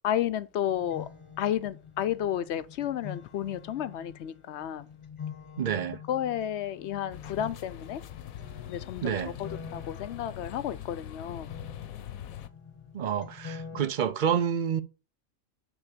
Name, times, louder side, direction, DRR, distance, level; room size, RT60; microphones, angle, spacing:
voice 1, 0.0-1.1 1.4-4.9 6.1-8.0 8.7-11.5 13.7-13.8, left 10 dB, 65° left, 0.8 m, -32 dB
sound 1, 0.7-13.9, left 6 dB, 25° left, 0.8 m, -46 dB
voice 2, 5.6-6.0 9.0-9.3 12.9-14.8, right 8 dB, 50° right, 0.6 m, -28 dB
sound 2, 7.1-12.5, left 11 dB, 80° left, 1.2 m, -43 dB
10.0 x 3.5 x 6.6 m
omnidirectional pair, 1.4 m